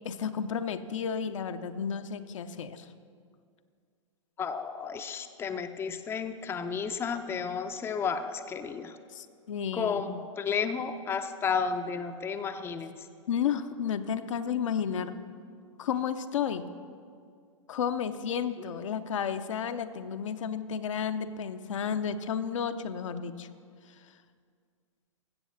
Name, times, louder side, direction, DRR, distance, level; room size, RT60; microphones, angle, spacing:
voice 1, 0.0-2.9 9.1-10.2 13.3-15.2 15.8-16.7 17.7-23.5, left 7 dB, 70° left, 8 dB, 0.7 m, -32 dB
voice 2, 4.4-9.0 9.7-13.0, left 6 dB, 15° left, 7 dB, 0.5 m, -32 dB
15.0 x 7.1 x 5.6 m, 2.2 s
hypercardioid pair, 110°, 17 cm